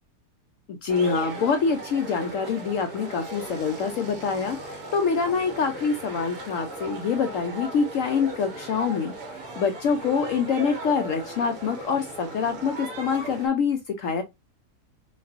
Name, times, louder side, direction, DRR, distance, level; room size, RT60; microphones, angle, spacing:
voice 1, 0.7-9.1 9.6-14.2, left 5 dB, 70° left, 0.8 m, -25 dB
sound 1, 0.9-13.5, right 1 dB, 65° right, 1.6 m, -37 dB
5.2 x 2.4 x 2.4 m
omnidirectional pair, 1.7 m